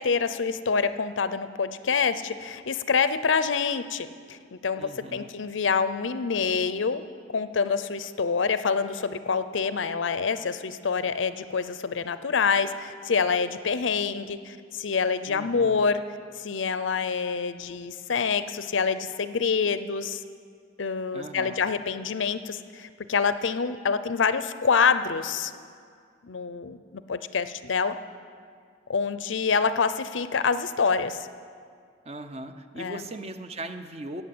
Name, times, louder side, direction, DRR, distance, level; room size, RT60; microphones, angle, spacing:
voice 1, 0.0-7.0 7.3-16.0 16.3-20.2 20.8-25.5 26.2-28.0 28.9-31.3 32.8-33.0, left 5 dB, 90° left, 12 dB, 0.6 m, -26 dB
voice 2, 4.8-5.3 15.2-15.8 21.1-21.6 32.1-34.2, right 1 dB, 35° right, 8 dB, 0.7 m, -39 dB
17.0 x 7.6 x 7.8 m, 2.1 s
head